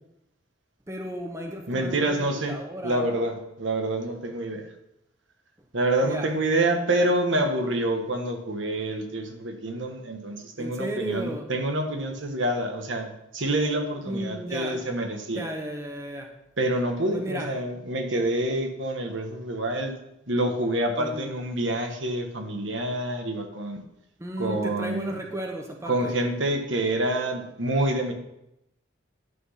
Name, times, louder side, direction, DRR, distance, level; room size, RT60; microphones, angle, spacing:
voice 1, 0.9-3.1 6.0-6.3 10.6-11.5 14.0-14.8 15.3-16.3 17.1-17.5 21.0-21.3 24.2-26.1, right 1 dB, 15° right, 2 dB, 1.0 m, -34 dB
voice 2, 1.7-2.6 2.8-4.7 5.7-15.4 16.6-19.9 20.3-23.8 24.4-25.1 25.9-28.1, right 1 dB, 65° right, 4 dB, 1.4 m, -27 dB
11.0 x 6.1 x 5.8 m, 0.86 s
head